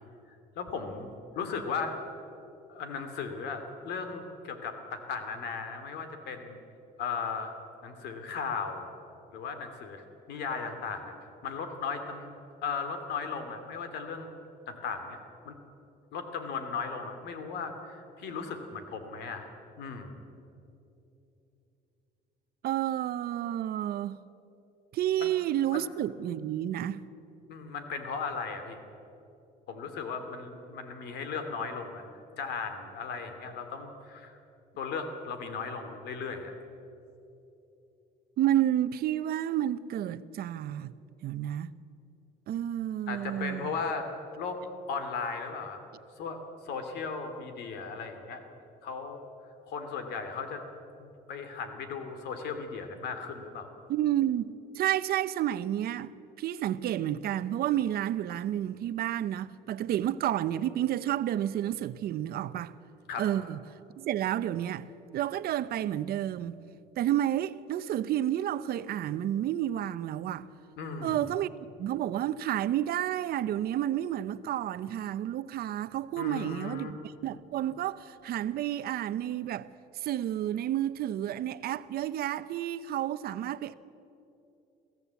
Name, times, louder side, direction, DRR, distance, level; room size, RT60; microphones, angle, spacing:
voice 1, 0.6-1.1 1.3-2.0 2.7-6.6 7.0-7.5 7.8-8.9 9.3-11.1 11.4-12.3 12.6-14.4 14.7-15.5 16.1-19.5 19.8-20.2 25.2-25.3 25.7-25.9 27.5-28.8 29.7-32.0 32.4-34.4 34.8-36.6 43.1-44.1 44.4-44.6 44.9-45.8 46.2-46.4 46.6-48.4 48.8-49.2 49.7-50.6 51.0-53.7 63.1-63.2 70.8-71.2 76.2-76.9, left 5 dB, 80° left, 2.7 m, -36 dB
voice 2, 22.6-24.2 24.9-27.0 38.4-40.9 41.2-41.7 42.5-43.8 53.9-54.5 54.7-56.1 56.4-62.7 63.2-63.6 64.0-64.8 65.1-66.6 67.0-70.5 71.0-71.5 71.8-79.7 80.0-83.7, right 12 dB, 65° right, 0.8 m, -30 dB
22.5 x 15.5 x 8.3 m
cardioid pair, 110°, 17 cm